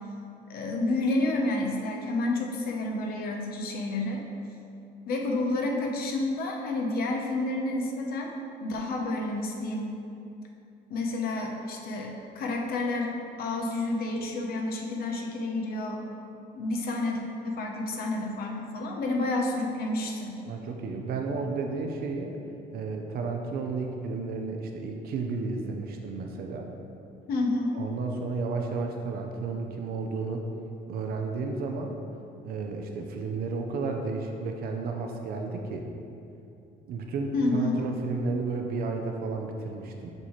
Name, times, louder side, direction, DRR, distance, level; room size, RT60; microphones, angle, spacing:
voice 1, 0.5-4.2 5.1-8.3 8.6-9.9 10.9-16.0 16.5-20.4 27.3-27.7 37.3-37.8, left 2 dB, 65° left, 1 dB, 0.9 m, -29 dB
voice 2, 20.4-22.4 22.7-26.7 27.7-30.4 30.9-31.9 32.4-35.9 36.9-40.1, right 4 dB, 65° right, 3 dB, 0.6 m, -32 dB
6.6 x 5.6 x 3.2 m, 2.7 s
cardioid pair, 110°, 17 cm